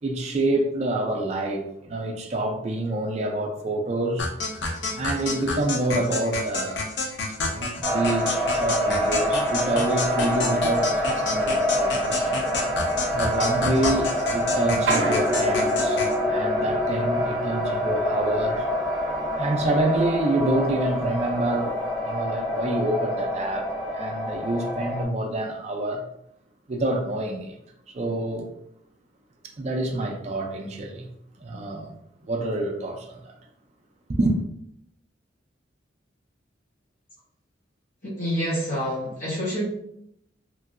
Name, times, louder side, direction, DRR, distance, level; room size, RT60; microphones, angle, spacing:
voice 1, 0.0-4.3 4.9-6.8 7.4-12.4 13.1-16.0 16.3-18.6 19.4-21.7 22.0-26.0 26.7-27.6 27.9-28.5 29.6-31.1 31.4-31.9 32.2-33.3 34.1-34.4, right 1 dB, 35° right, 0.4 m, -27 dB
sound 1, 4.2-16.2, left 3 dB, 65° left, 0.5 m, -30 dB
sound 2, 7.8-25.0, equal, 5° left, 0.7 m, -26 dB
sound 3, 12.8-12.9 13.3-14.2 14.7-20.0 20.3-21.0 21.5-21.7, right 1 dB, 85° right, 0.5 m, -31 dB
voice 2, 38.0-39.6, equal, 45° left, 1.0 m, -27 dB
3.0 x 2.6 x 2.4 m
head